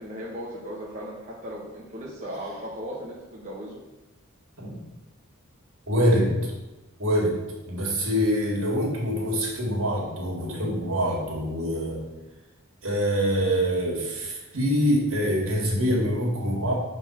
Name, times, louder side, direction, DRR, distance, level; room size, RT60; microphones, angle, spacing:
voice 1, 0.0-3.8, equal, 35° right, -5 dB, 1.1 m, -37 dB
voice 2, 5.9-6.3 7.0-7.4 7.7-12.0 12.8-16.7, equal, 65° right, -2 dB, 2.0 m, -25 dB
6.8 x 3.6 x 5.9 m, 1.0 s
head